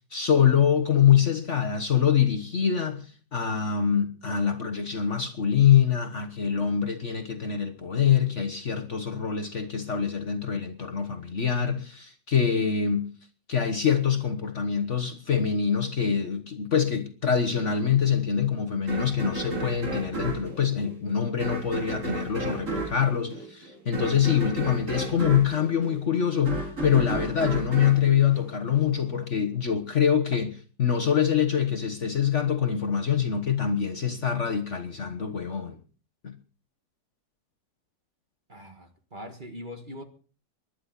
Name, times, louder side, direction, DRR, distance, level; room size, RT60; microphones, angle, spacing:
voice 1, 0.0-13.1 13.5-35.8 36.2-36.3, left 8 dB, 45° left, 1.4 m, -25 dB
sound 1, 18.9-29.1, right 2 dB, 45° right, 3.1 m, -33 dB
voice 2, 38.5-40.0, left 1 dB, 30° right, 1.8 m, -41 dB
24.5 x 11.5 x 4.1 m
omnidirectional pair, 1.9 m